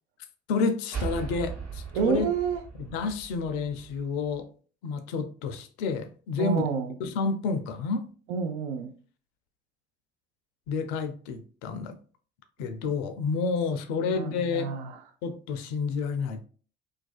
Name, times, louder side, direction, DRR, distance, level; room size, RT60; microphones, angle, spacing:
voice 1, 0.5-2.3 2.8-4.5 4.8-6.6 7.0-8.1 10.7-12.0 12.6-14.7 15.2-16.4, left 4 dB, 70° left, 0.5 m, -30 dB
sound 1, 0.9-4.4, right 5 dB, 55° right, 1.0 m, -38 dB
voice 2, 1.9-2.6 6.4-7.0 8.3-8.9 14.1-15.0, right 6 dB, 75° right, 0.5 m, -29 dB
2.4 x 2.3 x 2.3 m
figure-of-eight pair, 45°, 34 cm